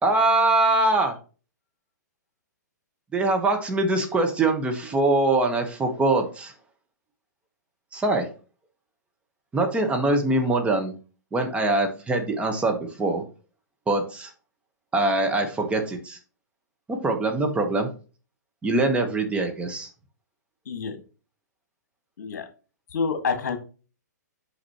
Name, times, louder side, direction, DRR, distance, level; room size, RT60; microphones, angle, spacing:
voice 1, 0.0-1.2 3.1-6.5 7.9-8.3 9.5-10.9 11.3-13.2 13.9-14.3 14.9-16.2 16.9-17.9 18.6-19.9, right 2 dB, 10° right, 4 dB, 1.1 m, -23 dB
voice 2, 20.7-21.0 22.2-22.5 22.9-23.6, left 5 dB, 65° left, 7 dB, 1.6 m, -27 dB
6.1 x 5.8 x 2.9 m, 0.35 s
hypercardioid pair, 120°, 10 cm